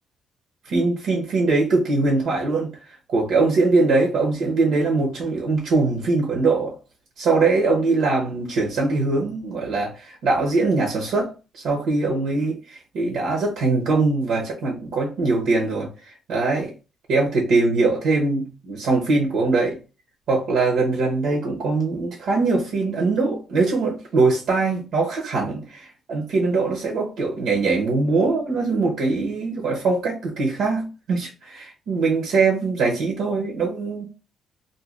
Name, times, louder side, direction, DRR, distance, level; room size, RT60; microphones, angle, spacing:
voice 1, 0.7-2.7 3.1-6.7 7.2-11.3 11.5-15.9 16.3-16.7 17.1-19.8 20.3-34.0, right 3 dB, 80° right, 0.9 m, -22 dB
2.6 x 2.2 x 3.2 m
cardioid pair, 90°, 0 cm